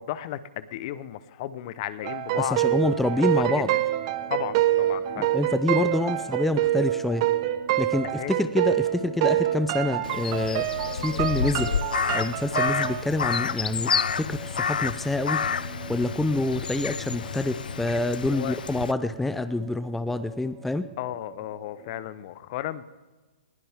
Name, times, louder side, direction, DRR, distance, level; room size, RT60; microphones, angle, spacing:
voice 1, 0.0-3.0 3.3-3.6 4.3-5.4 8.2-8.3 18.3-18.6 21.0-22.8, left 13 dB, 45° left, 16 dB, 0.9 m, -34 dB
sound 1, 2.0-13.0, right 14 dB, 40° right, 1.0 m, -26 dB
voice 2, 2.4-3.7 5.2-7.3 7.8-10.6 10.9-11.7 12.1-15.4 15.9-20.8, left 2 dB, 5° left, 12 dB, 0.5 m, -27 dB
sound 2, 3.3-22.1, right 7 dB, 25° right, 1.5 m, -46 dB
Crow, 10.0-18.9, left 6 dB, 80° left, 0.6 m, -29 dB
20.5 x 15.5 x 3.6 m, 1.2 s
hypercardioid pair, 130°, 5 cm